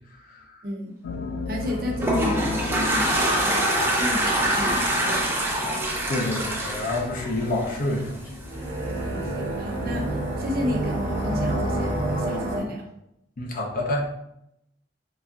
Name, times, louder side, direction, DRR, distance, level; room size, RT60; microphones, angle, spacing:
voice 1, 0.1-0.6 6.1-8.3 13.4-14.1, left 1 dB, 50° left, -1 dB, 0.7 m, -28 dB
sound 1, 1.0-12.4, left 3 dB, 90° left, 0.3 m, -37 dB
voice 2, 1.5-5.5 9.0-12.9, left 1 dB, 55° right, 0 dB, 0.7 m, -33 dB
Toilet flush, 1.6-8.0, right 1 dB, 15° right, 0.5 m, -24 dB
sound 2, 8.4-12.6, right 1 dB, 90° right, 1.0 m, -28 dB
4.0 x 2.6 x 2.3 m, 0.81 s
head